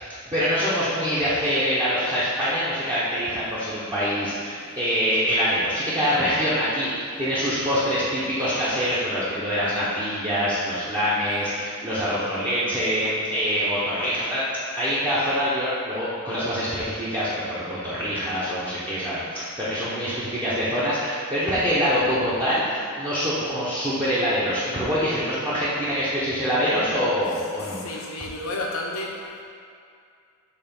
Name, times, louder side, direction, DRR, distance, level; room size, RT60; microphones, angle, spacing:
voice 1, 0.3-14.4 14.8-28.0, equal, 20° right, -11 dB, 1.0 m, -25 dB
voice 2, 27.6-29.4, left 2 dB, 80° left, -1 dB, 1.0 m, -32 dB
6.8 x 3.3 x 5.3 m, 2.4 s
head